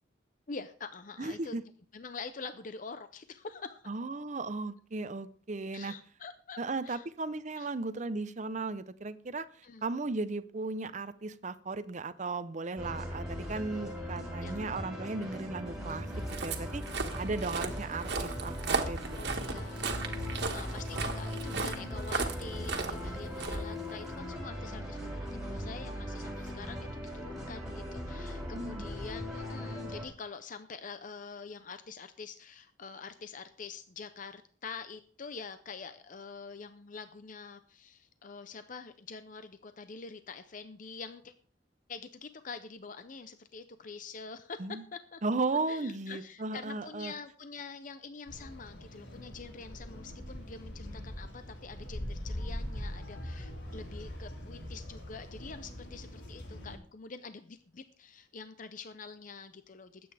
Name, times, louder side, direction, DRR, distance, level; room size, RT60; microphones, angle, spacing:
voice 1, 0.5-1.6 1.9-3.8 5.7-7.0 7.6-7.7 9.6-9.8 14.4-14.6 17.5-17.6 19.2-41.3 41.9-44.6 44.9-45.2 45.7-60.1, left 4 dB, 45° left, 10 dB, 0.6 m, -46 dB
voice 2, 1.2-1.6 3.9-5.9 6.6-16.8 17.2-19.0 19.2-19.4 28.5-28.8 44.6-44.8 45.2-47.1, right 3 dB, 40° right, 14 dB, 0.7 m, -36 dB
sound 1, 12.8-30.0, equal, 5° right, 4.2 m, -40 dB
Walk footsteps, 16.0-24.2, right 3 dB, 60° right, 1.7 m, -36 dB
sound 2, 48.3-56.8, left 1 dB, 80° left, 4.5 m, -42 dB
20.5 x 8.7 x 3.4 m, 0.43 s
head